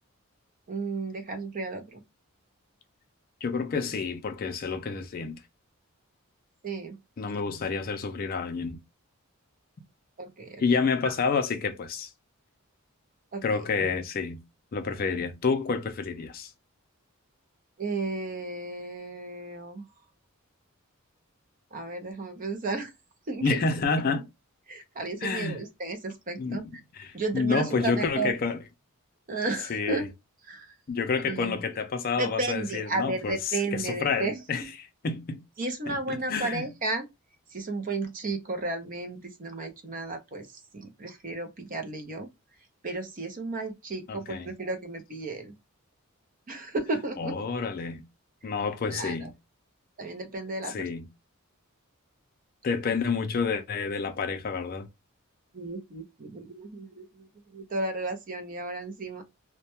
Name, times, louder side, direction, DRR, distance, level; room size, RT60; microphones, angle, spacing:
voice 1, 0.7-2.0 6.6-7.0 10.2-11.1 13.3-13.6 17.8-19.8 21.7-22.9 23.3-23.6 24.1-24.2 24.7-26.6 27.1-28.4 29.3-30.1 30.4-30.7 31.3-31.6 32.2-34.7 35.6-37.1 37.5-42.3 42.8-45.5 46.5-47.3 48.9-49.3 50.0-50.9 55.5-59.2, right 2 dB, 40° right, 0.5 m, -33 dB
voice 2, 3.4-5.4 7.2-8.8 10.6-12.1 13.4-14.4 14.7-16.5 23.4-24.2 25.2-25.6 26.4-26.6 27.0-28.6 29.7-30.1 30.9-33.4 33.7-34.6 35.0-35.4 35.9-36.7 44.1-44.5 47.2-48.0 48.4-49.3 50.7-51.1 52.6-54.9, left 4 dB, 40° left, 0.4 m, -29 dB
2.2 x 2.2 x 2.8 m
head